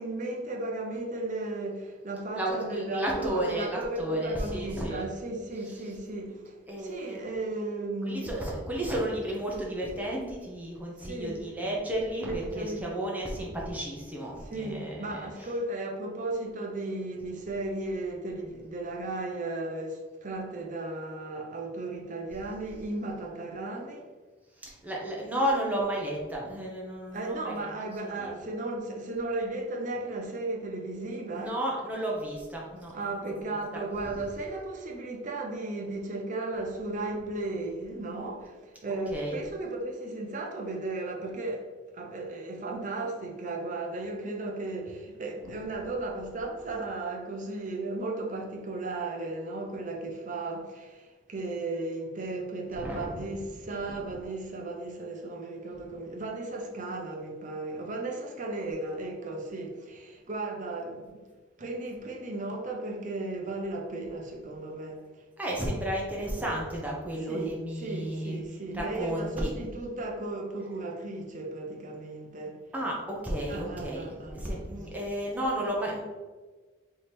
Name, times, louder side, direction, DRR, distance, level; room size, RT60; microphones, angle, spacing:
voice 1, 0.0-6.5 6.8-8.4 11.0-11.4 12.2-12.9 14.5-24.1 27.1-31.6 32.9-38.5 38.8-41.6 41.9-61.2 61.6-65.0 67.3-72.6 73.5-74.9, right 2 dB, 40° right, 0.7 m, -35 dB
voice 2, 2.3-5.0 6.7-7.2 8.0-15.5 24.6-27.7 28.0-28.3 31.3-33.3 34.0-34.1 39.1-39.4 52.8-53.3 53.9-54.0 65.4-68.4 68.7-69.5 72.7-76.0, right 1 dB, 10° right, 0.8 m, -33 dB
3.5 x 3.2 x 4.3 m
head